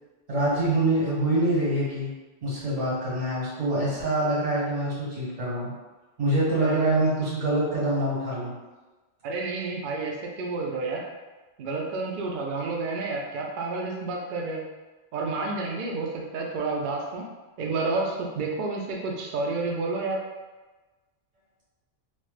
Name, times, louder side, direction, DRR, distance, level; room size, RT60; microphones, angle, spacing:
voice 1, 0.3-2.1 2.4-5.7 6.2-8.5, right 1 dB, 80° right, -8 dB, 1.6 m, -25 dB
voice 2, 9.2-11.0 11.6-14.6 15.1-17.3 17.6-20.2, right 3 dB, 60° right, -1 dB, 0.5 m, -30 dB
3.0 x 2.1 x 3.1 m, 1.2 s
omnidirectional pair, 1.2 m